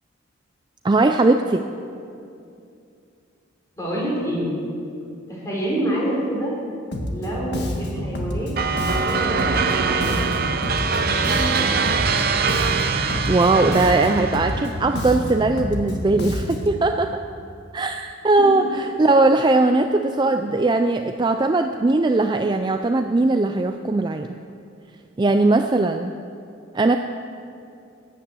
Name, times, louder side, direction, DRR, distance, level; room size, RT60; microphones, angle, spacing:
voice 1, 0.8-1.6 13.3-17.2 17.7-24.3 25.2-26.1 26.7-27.0, right 2 dB, 20° right, 6 dB, 0.3 m, -19 dB
voice 2, 3.8-4.5 5.3-6.5 7.1-8.5 9.0-10.3 11.3-11.7, right 1 dB, 15° left, -5 dB, 4.0 m, -27 dB
Bass guitar, 6.9-16.8, left 1 dB, 50° left, 1.6 m, -29 dB
sound 1, 8.6-14.8, right 5 dB, 45° right, 0.7 m, -23 dB
12.5 x 10.0 x 8.1 m, 2.6 s
head